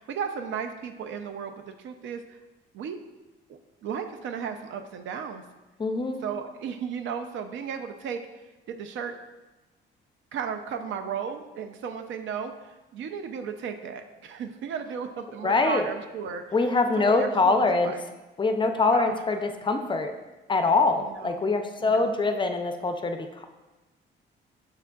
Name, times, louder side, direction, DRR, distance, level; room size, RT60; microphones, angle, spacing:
voice 1, 0.0-2.4 2.7-3.0 3.8-5.4 6.2-8.3 8.7-9.1 10.3-12.5 12.9-16.5 17.0-18.0 18.9-19.2 21.0-21.4 21.8-22.1, right 7 dB, 75° right, 7 dB, 0.5 m, -34 dB
voice 2, 5.8-6.2 15.4-15.9 16.5-17.9 18.4-20.1 20.5-23.4, left 3 dB, 25° left, 6 dB, 0.4 m, -24 dB
6.6 x 3.5 x 2.3 m, 1.1 s
cardioid pair, 90°, 20 cm